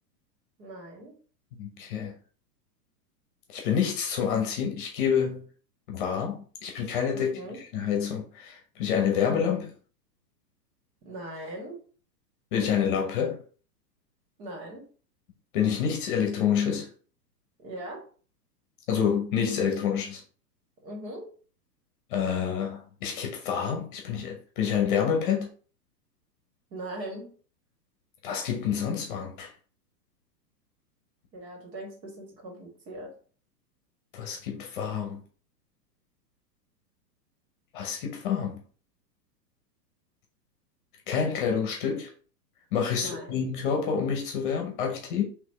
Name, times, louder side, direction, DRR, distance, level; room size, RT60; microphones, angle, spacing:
voice 1, 0.6-1.1 7.1-7.6 11.0-11.8 14.4-14.8 17.6-18.0 20.8-21.3 26.7-27.3 31.3-33.1 43.0-43.5, right 1 dB, 75° right, 2.0 m, -40 dB
voice 2, 1.6-2.1 3.5-5.4 5.9-7.3 7.7-9.7 12.5-13.4 15.5-16.9 18.9-20.2 22.1-25.5 28.2-29.5 34.1-35.2 37.7-38.6 41.1-42.1 42.7-45.2, left 7 dB, 30° left, 0.7 m, -28 dB
4.1 x 2.9 x 3.1 m
hypercardioid pair, 155°, 50 cm